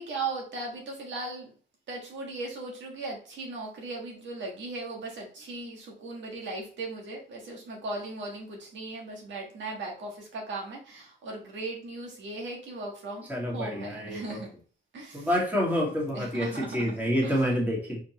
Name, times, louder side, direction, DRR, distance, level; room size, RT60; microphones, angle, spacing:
voice 1, 0.0-1.5 1.9-13.3 13.5-14.6 14.9-15.3 16.1-16.9 17.2-17.6, right 3 dB, 65° right, -1 dB, 1.5 m, -38 dB
voice 2, 13.3-14.4 15.1-18.0, equal, 10° right, -3 dB, 2.0 m, -28 dB
4.6 x 3.5 x 3.0 m, 0.42 s
cardioid pair, 90°, 20 cm